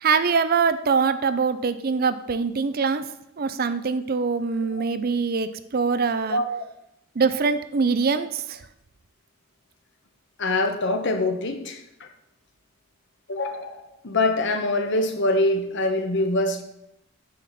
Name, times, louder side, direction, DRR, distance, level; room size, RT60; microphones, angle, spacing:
voice 1, 0.0-3.0 3.4-6.4 7.2-8.6, right 5 dB, 45° right, 12 dB, 0.5 m, -23 dB
voice 2, 10.4-12.1 13.3-16.6, left 2 dB, 55° left, 6 dB, 1.1 m, -24 dB
9.2 x 7.6 x 4.2 m, 0.84 s
head